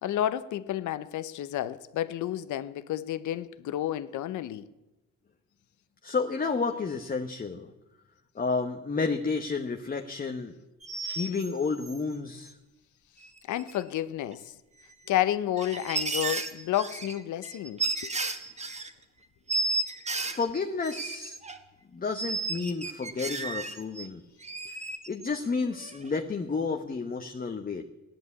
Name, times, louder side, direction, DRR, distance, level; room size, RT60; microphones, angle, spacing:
voice 1, 0.0-4.7 13.5-14.5 15.1-18.1, left 12 dB, 75° left, 0.9 m, -31 dB
voice 2, 6.0-7.7 8.3-10.6 11.0-12.5 20.2-21.4 21.9-24.2 24.7-24.8 25.1-27.8, left 4 dB, 30° left, 1.1 m, -31 dB
sound 1, 10.8-12.0 13.2-13.3 13.6-14.0 14.3-14.4 15.3-18.9 19.5-21.6 22.2-24.1 24.4-25.5 25.8-26.1, right 3 dB, 20° right, 1.7 m, -33 dB
15.5 x 10.5 x 8.4 m
cardioid pair, 90°, 30 cm